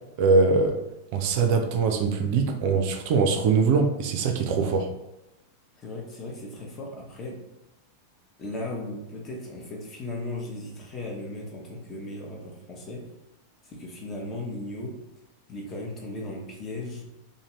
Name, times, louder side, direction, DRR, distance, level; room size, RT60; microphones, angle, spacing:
voice 1, 0.2-0.8 1.1-4.9, right 4 dB, 45° right, 5 dB, 0.4 m, -22 dB
voice 2, 5.8-7.4 8.4-13.1 13.6-15.0 15.5-17.0, left 2 dB, 25° left, -1 dB, 0.8 m, -36 dB
2.6 x 2.5 x 3.0 m, 0.94 s
figure-of-eight pair, 90°, 0 cm